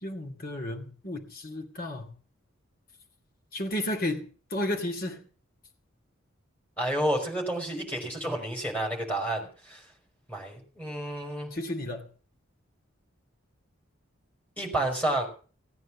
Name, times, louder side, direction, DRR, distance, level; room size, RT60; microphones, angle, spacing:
voice 1, 0.0-2.1 3.5-4.2 4.5-5.2 11.5-12.1, left 1 dB, 45° left, 2 dB, 2.4 m, -32 dB
voice 2, 6.8-9.8 10.3-11.5 14.6-15.3, right 1 dB, 5° left, 1 dB, 5.0 m, -30 dB
17.5 x 9.3 x 7.2 m, 0.41 s
head